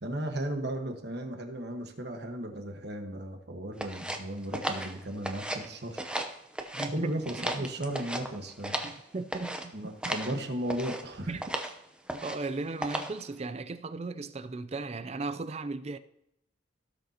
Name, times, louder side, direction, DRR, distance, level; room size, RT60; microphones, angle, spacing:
voice 1, 0.0-6.0 6.9-8.8 9.7-11.3, right 1 dB, 55° right, 1.4 m, -35 dB
sound 1, 3.8-5.7 5.9-6.9 7.2-9.0 9.3-9.7 10.0-10.3 10.7-11.0 11.4-11.7 12.1-12.5 12.8-13.2, right 1 dB, 5° right, 0.7 m, -35 dB
voice 2, 6.7-7.1 7.4-7.9 8.8-9.7 11.3-11.5 12.1-16.0, right 3 dB, 30° right, 0.4 m, -36 dB
17.5 x 6.5 x 2.9 m
head